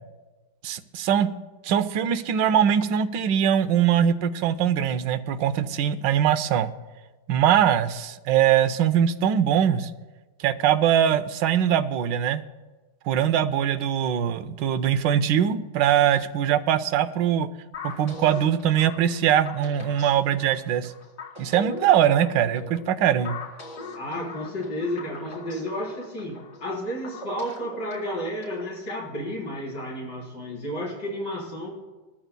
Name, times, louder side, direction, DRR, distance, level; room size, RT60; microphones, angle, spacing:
voice 1, 0.6-1.3 1.6-6.7 7.3-9.9 10.4-12.4 13.1-17.5 17.8-20.9 21.4-23.4, right 9 dB, 75° right, 13 dB, 1.3 m, -22 dB
sound 1, 17.7-28.8, left 2 dB, 50° left, 2.8 m, -41 dB
voice 2, 23.9-31.7, equal, 65° left, -5 dB, 4.9 m, -32 dB
21.5 x 13.0 x 2.2 m, 1.2 s
omnidirectional pair, 2.0 m